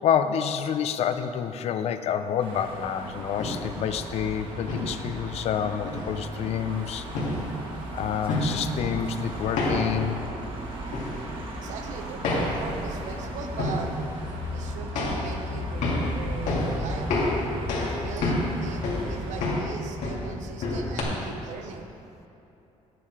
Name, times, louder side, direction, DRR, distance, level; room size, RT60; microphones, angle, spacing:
voice 1, 0.0-7.1 7.9-10.2, left 8 dB, 60° left, 10 dB, 0.5 m, -28 dB
sound 1, 2.4-19.5, right 2 dB, 45° right, 1.5 m, -39 dB
sound 2, 3.3-21.0, left 2 dB, 85° left, 2.4 m, -31 dB
voice 2, 11.6-14.0 14.5-17.3 18.0-21.9, right 5 dB, 80° right, 5 dB, 0.9 m, -39 dB
9.9 x 9.1 x 4.7 m, 2.9 s
cardioid pair, 175°, 12 cm